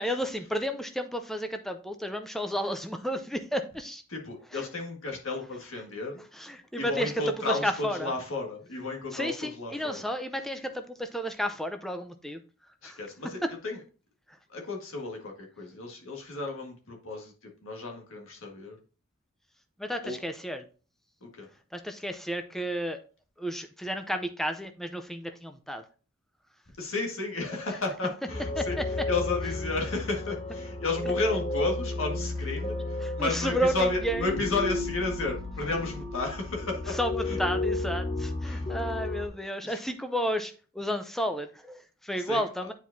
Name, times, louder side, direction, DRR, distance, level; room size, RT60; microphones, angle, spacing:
voice 1, 0.0-4.0 4.5-4.6 6.4-7.1 7.5-8.1 9.1-12.4 12.8-13.0 19.8-20.6 21.7-23.0 23.4-25.8 28.6-28.8 33.0-34.3 37.0-37.1 37.4-42.7, equal, ahead, 7 dB, 0.5 m, -32 dB
voice 2, 4.1-6.3 6.8-10.0 12.8-13.8 14.5-18.8 20.0-20.2 21.2-21.5 26.8-37.0 37.3-37.4 38.4-38.7 39.6-39.8 42.2-42.5, left 3 dB, 65° left, 1 dB, 1.7 m, -33 dB
sound 1, 28.3-39.3, left 2 dB, 25° left, 1.0 m, -33 dB
9.1 x 4.7 x 2.7 m, 0.37 s
head